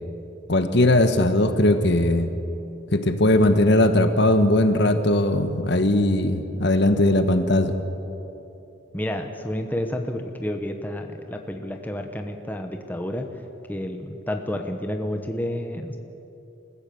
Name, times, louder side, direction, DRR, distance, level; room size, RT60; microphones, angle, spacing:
voice 1, 0.5-2.3 2.9-7.7, left 1 dB, 55° left, 8 dB, 1.2 m, -19 dB
voice 2, 8.9-13.3 13.7-16.0, left 1 dB, 10° left, 4 dB, 1.1 m, -30 dB
28.0 x 15.5 x 7.0 m, 2.9 s
head